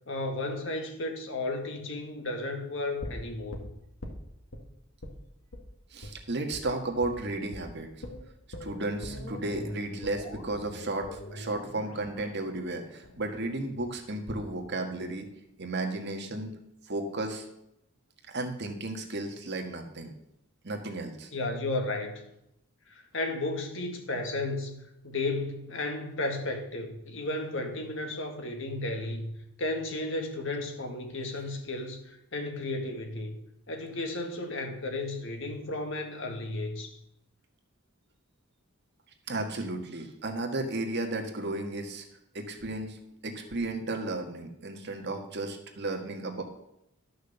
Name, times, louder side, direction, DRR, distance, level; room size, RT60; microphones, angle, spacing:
voice 1, 0.1-3.7 21.3-22.2 22.9-29.3 29.6-33.4 33.7-37.0, left 2 dB, 60° left, 4 dB, 2.0 m, -34 dB
sound 1, 3.0-4.6 5.0-5.2 5.5-5.7 6.0-6.2 6.5-6.7 7.0-7.2 7.5-7.7 8.0-14.0 14.3-14.4, left 1 dB, 85° left, 1.9 m, -42 dB
voice 2, 5.9-7.9 8.6-15.3 15.6-16.6 16.8-17.4 18.3-20.1 20.6-21.3 39.3-42.0 42.3-46.4, right 2 dB, 55° right, 3 dB, 1.7 m, -34 dB
12.0 x 6.5 x 6.9 m, 0.81 s
head